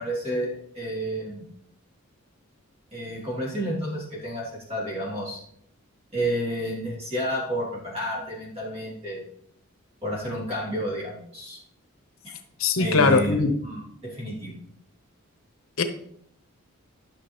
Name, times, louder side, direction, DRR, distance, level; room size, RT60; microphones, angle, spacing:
voice 1, 0.0-1.4 2.9-5.4 6.1-9.2 10.0-11.6 12.2-12.4 12.7-14.5, equal, 30° right, -4 dB, 3.0 m, -30 dB
voice 2, 12.6-13.5 15.8-15.9, left 4 dB, 70° left, 8 dB, 0.8 m, -20 dB
11.5 x 6.0 x 3.2 m, 0.68 s
head